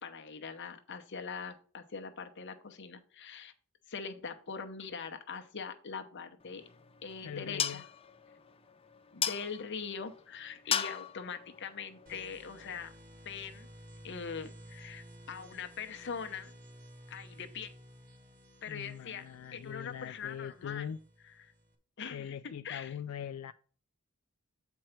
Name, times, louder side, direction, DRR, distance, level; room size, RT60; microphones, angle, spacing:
voice 1, 0.0-3.5 3.9-6.7 7.0-7.8 9.1-12.9 13.2-13.7 14.0-16.5 17.1-17.7 18.6-19.2 19.5-20.9 21.2-21.5 22.0-23.0, left 6 dB, 55° left, 0.8 m, -42 dB
sound 1, 6.4-12.8, left 8 dB, 25° left, 0.5 m, -38 dB
voice 2, 7.2-7.8 18.7-21.0 22.1-23.5, left 8 dB, 90° left, 0.3 m, -42 dB
sound 2, 12.1-21.7, equal, 40° right, 1.2 m, -54 dB
7.8 x 4.6 x 4.4 m
head